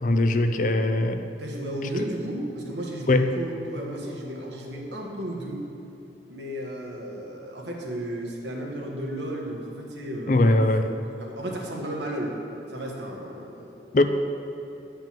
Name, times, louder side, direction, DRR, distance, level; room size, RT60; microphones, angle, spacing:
voice 1, 0.0-1.3 2.0-2.1 3.1-3.4 10.3-10.9 13.9-14.0, left 2 dB, 45° left, 7 dB, 0.5 m, -21 dB
voice 2, 1.4-5.6 6.3-10.6 11.2-12.3 12.7-14.0, right 1 dB, 85° right, -1 dB, 1.6 m, -34 dB
9.0 x 5.3 x 7.5 m, 2.7 s
head